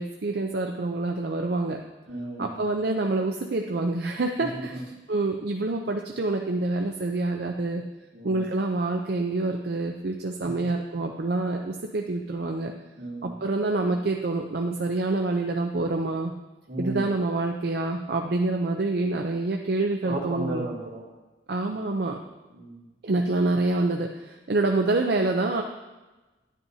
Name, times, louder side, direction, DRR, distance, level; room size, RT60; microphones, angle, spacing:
voice 1, 0.0-1.8 2.4-4.7 5.1-7.8 8.2-12.7 13.2-16.3 16.8-20.7 21.5-22.2 23.0-25.6, right 2 dB, 60° right, 3 dB, 0.5 m, -27 dB
voice 2, 2.1-2.6 4.4-4.8 8.1-8.5 10.4-10.5 13.0-13.4 16.7-17.1 20.0-21.0 22.5-22.9, right 1 dB, 80° right, -5 dB, 2.5 m, -34 dB
11.0 x 9.8 x 2.8 m, 1.1 s
head